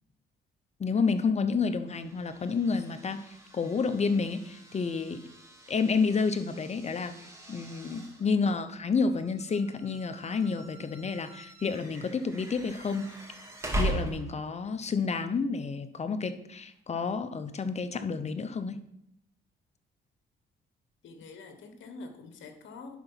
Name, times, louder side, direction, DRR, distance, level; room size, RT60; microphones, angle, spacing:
voice 1, 0.8-3.2 3.5-5.2 5.7-7.1 7.5-13.1 13.8-18.8, left 4 dB, 35° left, 9 dB, 0.8 m, -29 dB
sound 1, 1.9-14.7, right 1 dB, 15° right, 2.0 m, -40 dB
voice 2, 21.0-23.0, left 3 dB, 70° left, 6 dB, 1.4 m, -46 dB
10.5 x 4.0 x 5.7 m, 0.79 s
cardioid pair, 90°, 20 cm